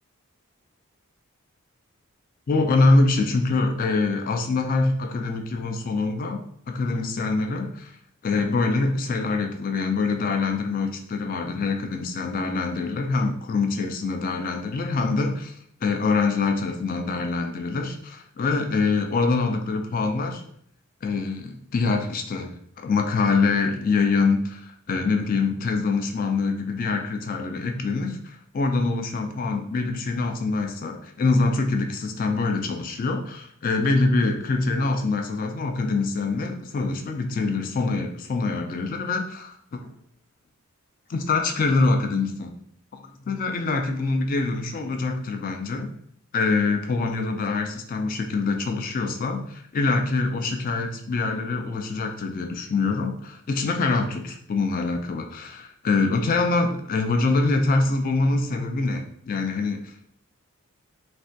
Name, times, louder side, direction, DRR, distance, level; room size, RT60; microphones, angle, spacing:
voice 1, 2.5-7.9 8.2-20.4 21.0-39.9 41.1-42.5 42.9-43.0 43.3-45.9 46.3-59.9, left 3 dB, 40° left, 6 dB, 0.3 m, -24 dB
3.2 x 2.1 x 2.6 m, 0.65 s
head